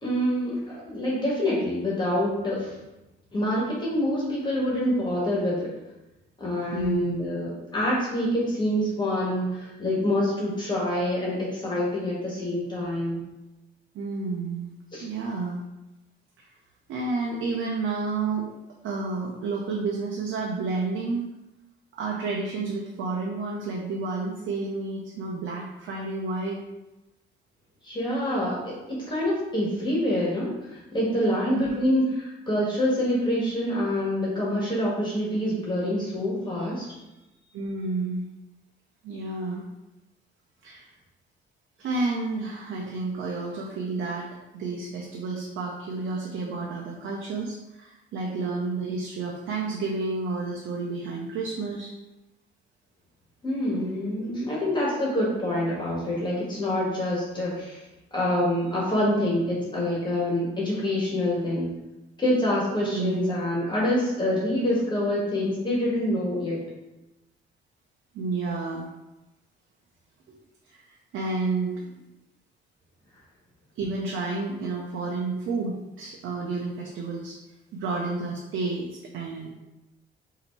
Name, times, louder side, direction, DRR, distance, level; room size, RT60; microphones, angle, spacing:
voice 1, 0.0-2.7 3.3-5.7 6.4-13.2 14.9-15.1 27.8-36.9 53.4-57.8 58.1-61.7 62.2-66.6, left 1 dB, 20° left, -5 dB, 1.6 m, -26 dB
voice 2, 6.7-7.2 13.9-14.7 15.0-15.6 16.4-16.5 16.9-18.5 18.8-21.3 21.9-26.6 31.5-31.7 37.5-38.2 39.0-39.6 40.6-40.9 41.8-51.9 62.8-63.3 68.1-68.9 70.3-70.4 70.7-71.9 73.8-77.4 77.7-79.5, right 3 dB, 80° right, -2 dB, 0.7 m, -30 dB
3.9 x 2.8 x 4.5 m, 0.98 s
cardioid pair, 90°, 20 cm